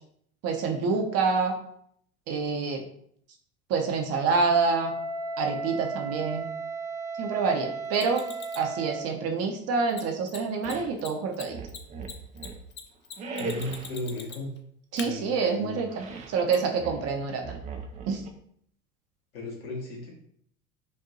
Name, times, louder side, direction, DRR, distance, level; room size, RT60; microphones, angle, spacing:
voice 1, 0.4-1.6 2.3-2.8 3.7-5.0 5.4-6.4 7.2-11.6 14.9-17.6 18.1-18.2, right 4 dB, 35° right, 3 dB, 0.7 m, -27 dB
Wind instrument woodwind instrument, 4.5-9.1, right 3 dB, 90° right, 1.6 m, -35 dB
Mechanisms, 7.9-8.7 9.9-10.0 10.3-10.4 10.6-10.7 11.0-14.6 15.0-15.1 16.5-16.6, left 7 dB, 25° left, 0.6 m, -41 dB
sound 1, 10.6-11.0 11.5-12.7 13.2-14.0 15.9-16.4 16.8-18.3, right 4 dB, 20° right, 0.3 m, -39 dB
voice 2, 13.4-14.5 15.0-15.8 19.3-20.1, left 2 dB, 70° left, -3 dB, 1.7 m, -35 dB
5.3 x 2.6 x 2.6 m, 0.67 s
figure-of-eight pair, 75°, 44 cm